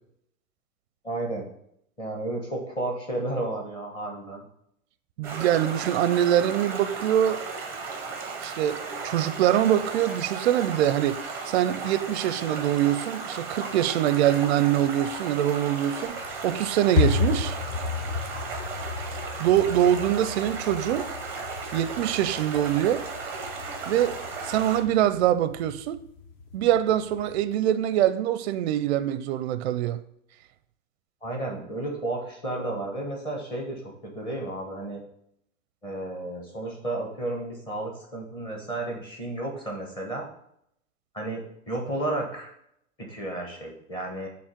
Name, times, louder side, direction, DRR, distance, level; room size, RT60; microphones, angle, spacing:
voice 1, 1.0-1.5 2.0-4.4 31.2-35.0 35.8-40.3 41.1-42.5 43.0-44.3, right 2 dB, 10° left, 1.1 m, -32 dB
Stream, 5.2-24.8, right 4 dB, 5° right, 0.7 m, -35 dB
voice 2, 5.2-7.5 8.4-11.2 11.5-17.5 19.4-21.1 21.7-23.0 23.9-26.0 26.5-30.0, right 11 dB, 50° right, 0.5 m, -24 dB
sound 1, 16.1-27.4, left 4 dB, 35° left, 0.8 m, -33 dB
7.3 x 3.1 x 5.1 m
supercardioid pair, 160°, 42 cm